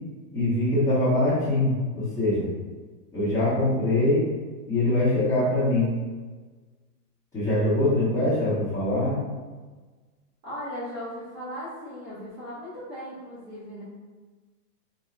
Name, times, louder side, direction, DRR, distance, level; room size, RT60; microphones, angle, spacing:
voice 1, 0.3-2.5 3.1-4.3 4.7-5.9 7.3-9.2, left 1 dB, 5° left, -12 dB, 1.0 m, -23 dB
voice 2, 10.4-13.8, equal, 15° right, -12 dB, 0.5 m, -37 dB
4.4 x 2.7 x 2.5 m, 1.3 s
supercardioid pair, 170°, 46 cm